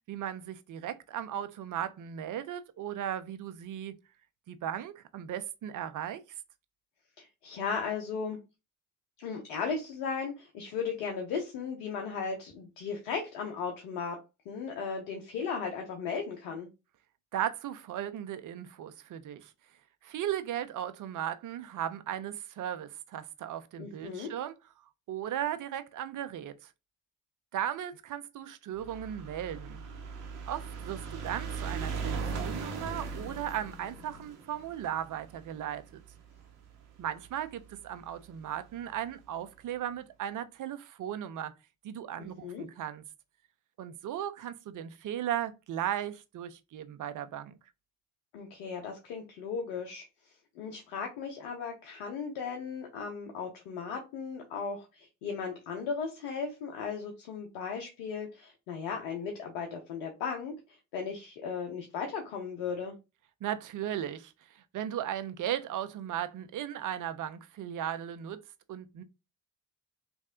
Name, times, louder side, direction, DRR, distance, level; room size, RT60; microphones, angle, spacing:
voice 1, 0.1-4.0 4.5-6.2 17.3-19.5 20.0-24.5 25.1-26.7 27.5-29.8 30.5-36.0 37.0-41.5 41.8-43.0 43.8-47.6 63.4-68.4 68.7-69.0, right 10 dB, 55° right, 0.7 m, -36 dB
voice 2, 7.2-8.4 9.2-14.2 14.5-16.7 23.8-24.3 42.2-42.6 48.3-50.0 50.6-62.9, left 5 dB, 80° left, 0.8 m, -36 dB
sound 1, 28.8-37.3 38.1-38.2 38.4-38.5 38.7-38.8, right 5 dB, 85° right, 0.9 m, -39 dB
3.2 x 2.7 x 3.7 m
hypercardioid pair, 55°, 38 cm